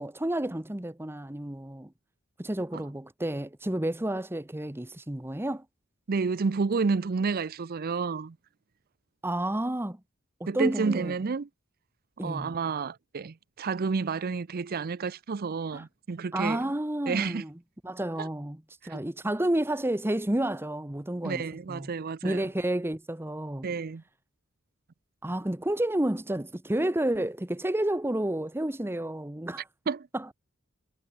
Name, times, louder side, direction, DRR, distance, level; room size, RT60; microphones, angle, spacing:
voice 1, 0.0-1.9 2.4-5.6 9.2-10.0 10.4-11.1 12.2-12.5 15.7-15.8 16.3-17.5 17.8-21.4 21.7-21.9 22.2-23.7 25.2-29.7 30.1-30.3, right 1 dB, 10° right, 0.9 m, -30 dB
voice 2, 6.1-8.4 10.5-11.5 12.2-16.7 17.1-17.4 18.2-18.3 18.8-19.0 21.2-22.5 23.6-24.0 29.9-30.1, right 4 dB, 45° right, 0.5 m, -30 dB
head